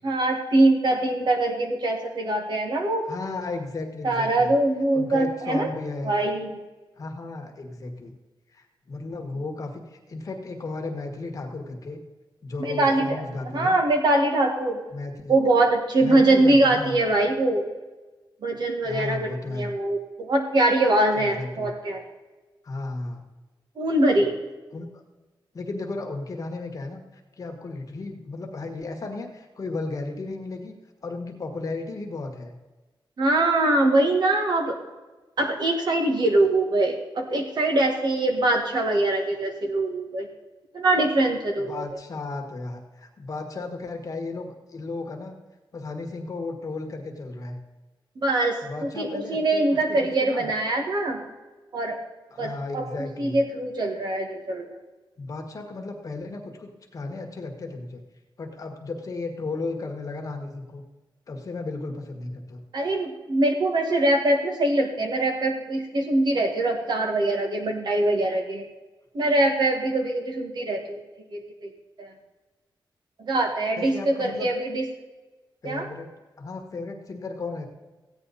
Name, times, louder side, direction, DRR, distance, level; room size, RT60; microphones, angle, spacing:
voice 1, 0.0-3.1 4.0-5.7 6.0-6.6 12.6-13.3 13.5-14.8 15.3-17.7 18.4-22.0 23.8-24.3 33.2-34.8 35.4-40.3 40.7-42.0 48.2-51.2 51.7-52.0 52.4-54.8 62.7-68.6 69.1-71.0 71.3-71.7 72.0-72.1 73.2-74.8 75.6-75.9, right 2 dB, 60° right, 2 dB, 1.8 m, -23 dB
voice 2, 3.1-4.5 4.9-6.2 7.0-8.2 8.5-12.0 12.4-13.8 14.9-15.4 16.0-17.0 18.8-19.7 21.1-21.7 22.6-23.2 24.7-24.9 25.5-27.0 27.4-30.8 31.0-32.5 41.7-45.4 45.7-47.6 48.6-49.6 49.9-50.5 52.3-53.4 55.2-58.0 58.4-60.8 61.3-62.6 73.8-74.5 75.6-76.1 76.4-77.6, left 3 dB, 40° left, 3 dB, 1.5 m, -34 dB
15.0 x 9.6 x 4.1 m, 1.2 s
wide cardioid pair, 165°, 9 cm